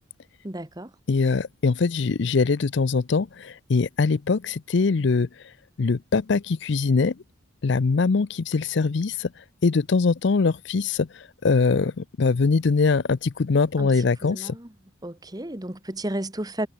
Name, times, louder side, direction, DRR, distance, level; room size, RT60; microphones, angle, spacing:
voice 1, 0.4-0.9 13.8-14.7 15.0-16.7, right 1 dB, 20° right, 1.3 m, -33 dB
voice 2, 1.1-5.3 5.8-7.1 7.6-9.3 9.6-11.1 11.4-14.5, left 4 dB, 60° left, 0.5 m, -22 dB
head